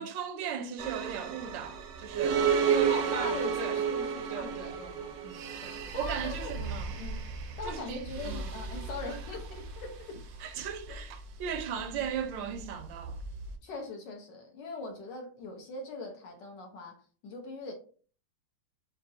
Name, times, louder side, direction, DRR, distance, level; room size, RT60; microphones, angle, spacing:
voice 1, 0.0-3.8 4.3-4.8 6.0-7.0 7.6-8.5 9.1-9.2 10.4-13.2, right 8 dB, 85° right, 1.3 m, -37 dB
sound 1, 0.8-13.6, right 7 dB, 70° right, 0.9 m, -33 dB
voice 2, 2.7-7.2 7.6-10.2 10.6-11.0 13.6-17.0 17.2-17.7, left 3 dB, 75° left, 1.7 m, -41 dB
5.2 x 2.7 x 2.6 m
omnidirectional pair, 1.9 m